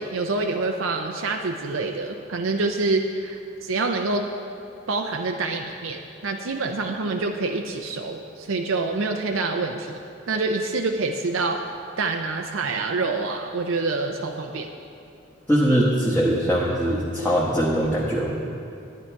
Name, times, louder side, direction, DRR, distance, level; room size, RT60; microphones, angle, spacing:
voice 1, 0.0-4.3 4.9-10.0 10.3-11.6 12.0-14.7, right 3 dB, 90° right, 3 dB, 0.6 m, -26 dB
voice 2, 15.5-18.3, equal, 10° left, -7 dB, 1.1 m, -21 dB
11.0 x 10.0 x 4.6 m, 2.5 s
head